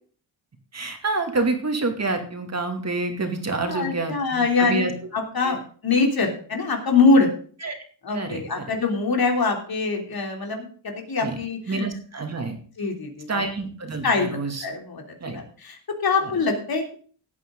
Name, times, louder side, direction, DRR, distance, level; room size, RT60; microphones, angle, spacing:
voice 1, 0.7-4.9 5.4-5.6 7.6-7.7 8.1-8.7 11.2-11.4 11.7-12.6 13.3-14.7 15.2-15.4 16.2-16.3, right 3 dB, 35° right, 5 dB, 2.5 m, -28 dB
voice 2, 3.6-4.8 5.1-5.6 5.8-7.3 8.0-11.7 12.8-13.4 14.0-16.9, left 4 dB, 50° left, 3 dB, 3.3 m, -23 dB
17.0 x 9.0 x 3.9 m, 0.43 s
wide cardioid pair, 125°, 47 cm